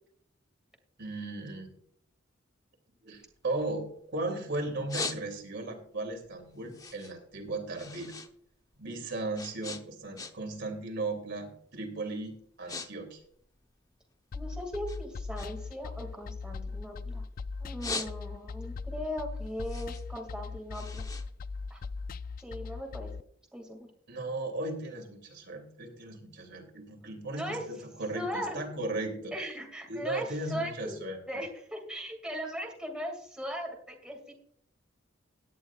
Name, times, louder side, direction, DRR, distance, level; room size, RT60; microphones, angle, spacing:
voice 1, 1.0-1.7 3.0-8.1 8.8-13.2 24.1-27.6 28.0-29.3 29.9-31.4, right 2 dB, 60° right, 3 dB, 2.9 m, -36 dB
sound 1, 3.1-4.3 4.6-5.7 6.1-8.3 8.6-10.6 10.9-11.3 11.9-12.0 12.3-12.9 13.1-14.4 14.8-17.2 17.6-18.6 19.0-22.1, left 3 dB, 20° left, 0.9 m, -41 dB
sound 2, 14.3-23.2, left 4 dB, 45° left, 0.3 m, -39 dB
voice 2, 14.3-17.2 17.6-21.1 21.7-21.8 22.4-23.1 23.5-23.9 27.3-27.7 28.1-28.6 29.3-31.0 31.3-34.3, equal, 5° right, 1 dB, 2.3 m, -38 dB
17.5 x 10.5 x 2.4 m, 0.64 s
head